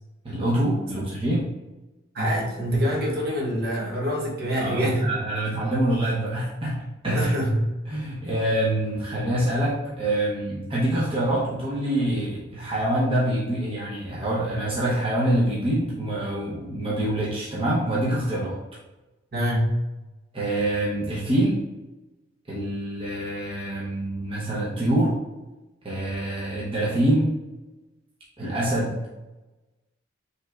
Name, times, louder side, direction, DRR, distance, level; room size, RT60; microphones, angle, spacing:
voice 1, 0.2-1.4 4.6-6.8 7.0-7.3 7.9-18.6 20.3-21.6 22.5-25.1 25.8-27.3 28.4-28.9, right 1 dB, 25° right, -7 dB, 0.8 m, -25 dB
voice 2, 2.1-5.1 7.1-7.6 19.3-19.8, equal, 50° right, -3 dB, 1.1 m, -25 dB
5.4 x 3.2 x 2.4 m, 1.1 s
head